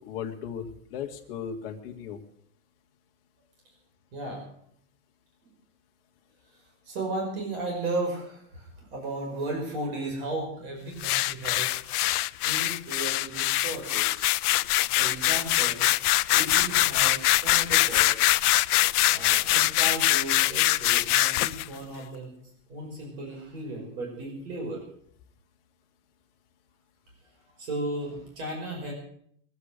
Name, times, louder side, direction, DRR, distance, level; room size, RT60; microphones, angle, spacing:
voice 1, 0.0-2.2, left 7 dB, 40° left, 2 dB, 1.8 m, -36 dB
voice 2, 6.8-12.0 12.4-14.6 14.9-15.9 16.3-18.1 19.1-22.3 22.7-24.8 27.6-28.9, right 2 dB, 40° right, -1 dB, 5.5 m, -35 dB
sound 1, 11.0-21.7, left 16 dB, 80° left, 0.6 m, -23 dB
22.0 x 8.3 x 6.6 m, 0.66 s
supercardioid pair, 180°, 45 cm